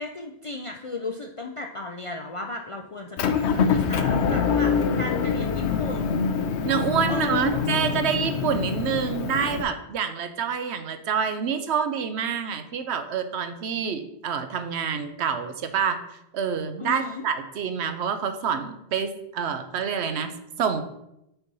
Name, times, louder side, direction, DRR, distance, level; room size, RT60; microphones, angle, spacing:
voice 1, 0.0-6.2 7.1-7.6 16.8-17.2, left 2 dB, 50° left, 2 dB, 0.4 m, -35 dB
Motor vehicle (road) / Engine, 3.2-9.6, left 6 dB, 80° left, 0.9 m, -25 dB
voice 2, 6.6-16.0 16.3-20.8, right 7 dB, 80° right, 9 dB, 0.9 m, -27 dB
5.8 x 4.0 x 5.4 m, 0.84 s
omnidirectional pair, 1.1 m